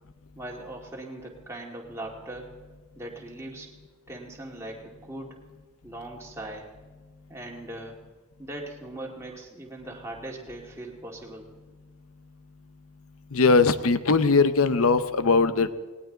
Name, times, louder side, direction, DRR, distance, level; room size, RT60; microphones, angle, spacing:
voice 1, 0.3-2.5 2.9-3.7 4.1-5.4 5.8-6.7 7.3-8.1 8.4-11.5, right 1 dB, 10° right, -1 dB, 2.1 m, -40 dB
voice 2, 13.3-15.7, left 4 dB, 75° left, 12 dB, 0.8 m, -20 dB
18.5 x 18.5 x 3.9 m, 1.4 s
head